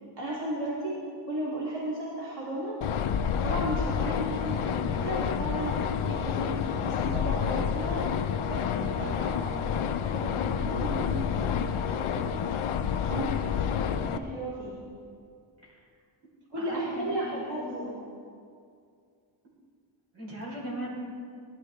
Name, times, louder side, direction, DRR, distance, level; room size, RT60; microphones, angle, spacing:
voice 1, 0.2-0.9 1.3-2.8 3.1-9.5 9.9-12.3 13.0-14.8 16.5-18.0, right 1 dB, 55° right, -8 dB, 2.7 m, -35 dB
sound 1, 2.8-14.2, left 7 dB, 85° left, 0.7 m, -29 dB
voice 2, 9.0-9.4 15.6-15.9 16.6-17.6 20.1-21.1, right 1 dB, 75° right, -4 dB, 3.8 m, -39 dB
18.5 x 11.0 x 3.4 m, 2.3 s
wide cardioid pair, 125°, 48 cm